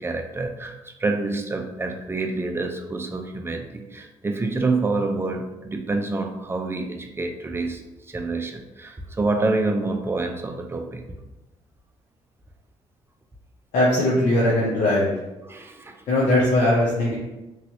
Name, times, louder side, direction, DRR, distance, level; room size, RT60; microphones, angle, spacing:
voice 1, 0.0-7.8 8.1-11.1 15.4-16.0, right 3 dB, 20° right, 4 dB, 0.5 m, -27 dB
voice 2, 13.7-15.1 16.1-17.1, left 1 dB, 75° left, -7 dB, 0.8 m, -20 dB
3.1 x 2.7 x 2.8 m, 0.99 s
supercardioid pair, 65°, 13 cm